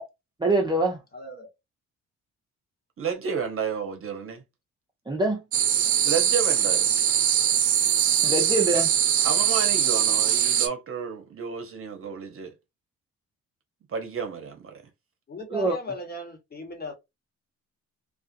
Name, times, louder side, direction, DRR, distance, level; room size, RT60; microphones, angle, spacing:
voice 1, 0.4-1.0 5.1-5.4 8.2-8.9 15.5-15.7, right 2 dB, 15° right, 0.7 m, -24 dB
voice 2, 1.1-1.5 15.3-16.9, left 1 dB, 30° left, 1.3 m, -37 dB
voice 3, 3.0-4.4 6.0-6.9 9.2-12.5 13.9-14.8, right 6 dB, 45° right, 0.9 m, -31 dB
sound 1, 5.5-10.7, right 9 dB, 70° right, 0.7 m, -22 dB
2.4 x 2.4 x 2.6 m
cardioid pair, 90°, 30 cm